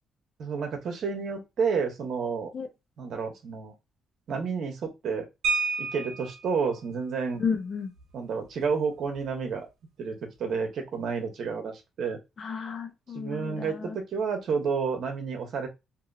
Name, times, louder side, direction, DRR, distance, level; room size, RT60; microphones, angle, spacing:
voice 1, 0.4-2.5 3.0-3.7 4.3-5.3 5.8-7.4 8.1-9.7 10.0-12.2 13.1-15.7, right 5 dB, 65° right, 1.1 m, -30 dB
sound 1, 5.4-6.5 8.0-8.1 8.4-8.6 9.0-9.3, right 4 dB, 85° right, 0.9 m, -30 dB
voice 2, 7.4-7.9 12.4-14.0, left 5 dB, 45° left, 0.8 m, -32 dB
2.7 x 2.6 x 2.7 m
cardioid pair, 90°, 0 cm